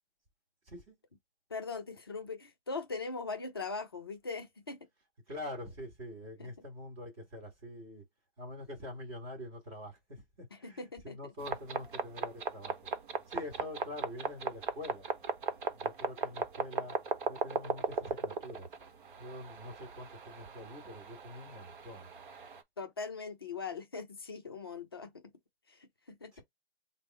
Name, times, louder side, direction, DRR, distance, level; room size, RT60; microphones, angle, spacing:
voice 1, 1.5-4.8 6.4-6.5 10.5-11.2 22.8-25.2 25.7-26.3, left 4 dB, 25° left, 0.5 m, -40 dB
voice 2, 5.3-8.0 8.4-10.8 11.0-12.8 13.3-15.1 15.8-17.0 17.3-18.7 19.2-22.1 26.3-26.4, left 1 dB, 25° right, 1.8 m, -45 dB
sound 1, 11.4-22.6, right 5 dB, 50° right, 0.9 m, -38 dB
3.5 x 2.0 x 4.1 m
hypercardioid pair, 165°, 32 cm